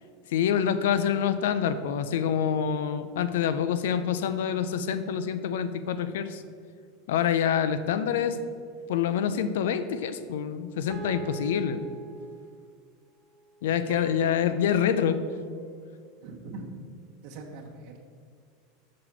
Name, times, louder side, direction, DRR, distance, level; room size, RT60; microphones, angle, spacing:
voice 1, 0.3-6.4 7.1-8.4 8.9-12.0 13.6-15.2, left 8 dB, 75° left, 12 dB, 0.5 m, -26 dB
sound 1, 9.0-9.7 10.9-12.7 13.9-16.3, right 5 dB, 35° right, 1.1 m, -44 dB
voice 2, 16.2-16.7 17.2-18.0, right 3 dB, 60° right, 1 dB, 1.1 m, -42 dB
6.5 x 4.1 x 6.0 m, 2.1 s
hypercardioid pair, 100°, 0 cm